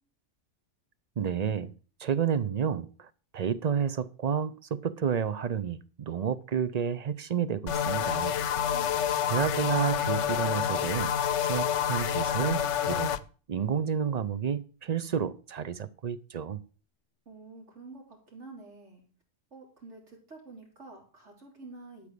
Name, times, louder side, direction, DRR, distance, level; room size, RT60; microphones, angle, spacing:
voice 1, 1.2-1.7 2.0-8.4 9.3-13.2 13.5-16.6, right 7 dB, 45° right, 0.6 m, -30 dB
sound 1, 7.7-13.2, left 9 dB, 80° left, 1.0 m, -28 dB
voice 2, 8.5-9.1 17.3-19.0 19.5-22.1, right 3 dB, 75° right, 3.7 m, -49 dB
12.0 x 4.9 x 6.8 m
omnidirectional pair, 1.2 m